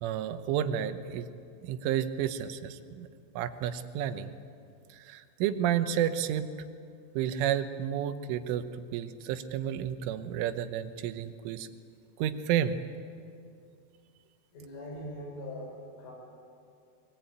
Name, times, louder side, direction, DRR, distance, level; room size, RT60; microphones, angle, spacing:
voice 1, 0.0-1.3 1.6-3.1 3.4-4.3 4.9-6.5 7.2-8.7 8.9-11.7 12.2-12.8, right 10 dB, 85° right, 10 dB, 3.5 m, -31 dB
voice 2, 14.5-16.1, left 1 dB, 80° left, -1 dB, 8.8 m, -41 dB
23.0 x 22.5 x 9.3 m, 2.4 s
omnidirectional pair, 5.5 m